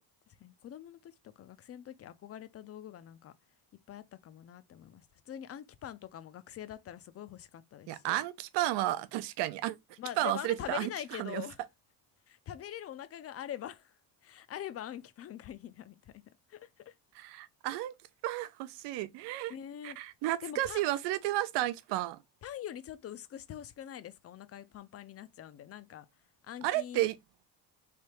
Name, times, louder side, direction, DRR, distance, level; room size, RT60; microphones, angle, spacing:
voice 1, 0.3-3.3 3.9-8.2 10.0-11.6 12.3-14.0 14.2-16.2 16.5-16.9 19.5-20.0 20.4-20.8 22.4-26.1 26.4-27.0, left 10 dB, 35° left, 0.5 m, -44 dB
voice 2, 7.9-10.9 11.2-11.4 17.1-17.9 18.2-19.5 19.8-22.2 26.6-27.1, right 15 dB, 75° right, 0.7 m, -32 dB
3.4 x 2.7 x 4.4 m
cardioid pair, 115°, 42 cm